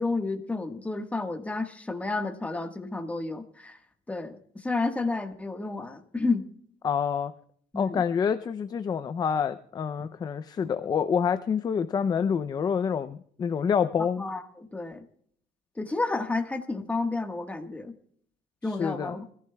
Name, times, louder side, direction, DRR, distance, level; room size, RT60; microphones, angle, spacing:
voice 1, 0.0-3.8 4.1-6.4 7.7-8.0 14.2-15.1 15.8-17.9 18.6-19.2, left 3 dB, 10° left, 5 dB, 1.4 m, -31 dB
voice 2, 6.8-7.3 7.8-14.2 18.6-19.2, left 7 dB, 30° left, 11 dB, 0.5 m, -27 dB
25.5 x 15.0 x 2.3 m, 0.62 s
cardioid pair, 135°, 14 cm